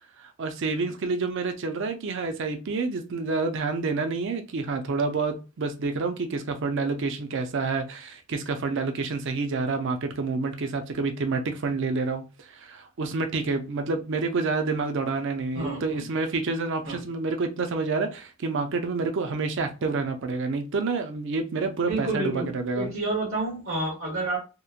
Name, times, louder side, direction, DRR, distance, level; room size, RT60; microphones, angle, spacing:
voice 1, 0.4-12.2 12.6-22.9, right 4 dB, 60° right, 6 dB, 0.5 m, -28 dB
voice 2, 15.5-16.0 16.9-17.0 21.8-24.4, right 2 dB, 85° right, -5 dB, 1.1 m, -29 dB
2.9 x 2.1 x 2.3 m, 0.32 s
head